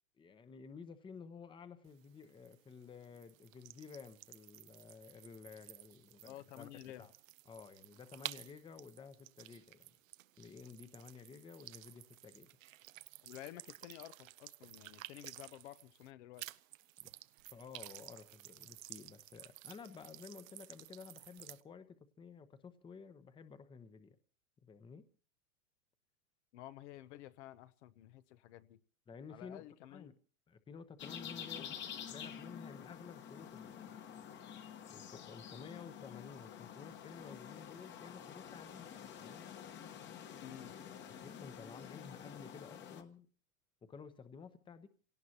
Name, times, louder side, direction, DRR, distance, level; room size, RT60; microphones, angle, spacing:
voice 1, 0.2-6.7 7.0-7.1 7.5-9.9 10.4-12.5 17.0-17.1 17.5-24.2 24.6-25.0 29.1-30.2 30.5-31.8 32.1-34.0 34.9-38.9 39.2-39.5 41.2-43.3 43.8-44.9, left 5 dB, 10° left, 11 dB, 1.0 m, -53 dB
sound 1, 1.8-16.1 16.4-21.6, right 16 dB, 75° right, 0.8 m, -53 dB
voice 2, 6.2-7.1 13.2-16.5 26.5-28.8 29.3-30.1 31.5-31.7 40.4-40.8, left 14 dB, 60° left, 13 dB, 1.0 m, -52 dB
sound 2, 31.0-43.0, left 8 dB, 25° left, 1.3 m, -49 dB
27.5 x 18.0 x 2.9 m, 0.39 s
supercardioid pair, 140°, 40 cm